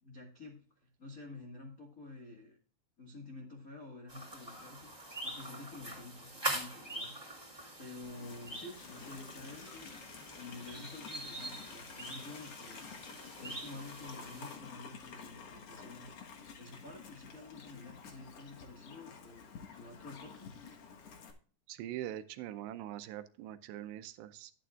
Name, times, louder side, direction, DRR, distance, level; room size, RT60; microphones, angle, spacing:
voice 1, 0.0-2.6 3.0-7.5 7.8-9.9 10.4-12.8 13.1-16.1 16.6-20.5, left 3 dB, 60° left, -2 dB, 0.9 m, -50 dB
sound 1, 4.1-14.6, right 2 dB, 5° right, 2.3 m, -44 dB
Livestock farm animals working animals, 8.0-21.3, left 5 dB, 80° left, 1.3 m, -51 dB
voice 2, 21.7-24.5, right 12 dB, 85° right, 12 dB, 2.8 m, -43 dB
11.5 x 10.0 x 2.4 m, 0.42 s
omnidirectional pair, 5.0 m